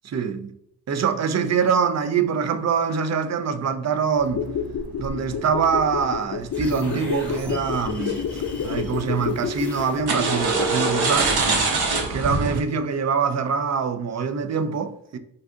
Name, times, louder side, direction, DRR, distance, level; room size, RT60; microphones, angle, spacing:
voice 1, 0.0-0.5 0.9-4.4 5.0-11.4 12.1-15.2, right 6 dB, 40° right, 0.4 m, -24 dB
sound 1, 4.2-11.1 11.3-11.4, left 7 dB, 45° left, 0.4 m, -30 dB
sound 2, 4.3-5.8 7.0-7.3 7.7-8.2 8.5-9.0 10.1-12.6, right 3 dB, 60° right, 0.8 m, -24 dB
sound 3, 6.5-10.4, left 2 dB, 5° left, 1.0 m, -37 dB
2.7 x 2.3 x 3.6 m
cardioid pair, 55°, 43 cm